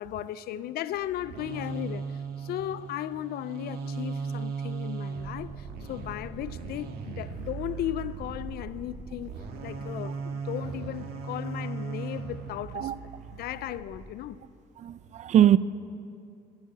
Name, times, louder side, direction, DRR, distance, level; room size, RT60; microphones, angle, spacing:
voice 1, 0.0-9.4 9.6-12.9 13.3-14.4, left 13 dB, 65° left, 0.4 m, -36 dB
sound 1, 0.9-14.0, right 5 dB, 70° right, 1.5 m, -37 dB
voice 2, 14.8-15.6, right 11 dB, 45° right, 0.4 m, -21 dB
13.0 x 7.3 x 7.9 m
cardioid pair, 110°, 17 cm